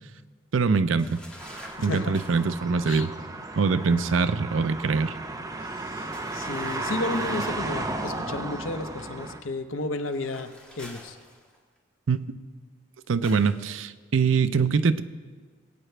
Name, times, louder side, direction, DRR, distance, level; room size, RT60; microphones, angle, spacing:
voice 1, 0.5-1.1 1.8-3.1 3.6-5.1 12.1-12.2 13.1-15.0, right 5 dB, 85° right, 12 dB, 0.5 m, -23 dB
sound 1, 1.0-2.6 6.1-7.7 10.0-11.8 13.2-13.6, equal, 5° left, 1.5 m, -48 dB
sound 2, 1.4-9.4, right 2 dB, 20° right, 0.7 m, -34 dB
voice 2, 1.8-2.2 2.9-3.1 5.8-11.2, left 2 dB, 90° left, 9 dB, 0.7 m, -33 dB
20.5 x 9.1 x 3.3 m, 1.5 s
head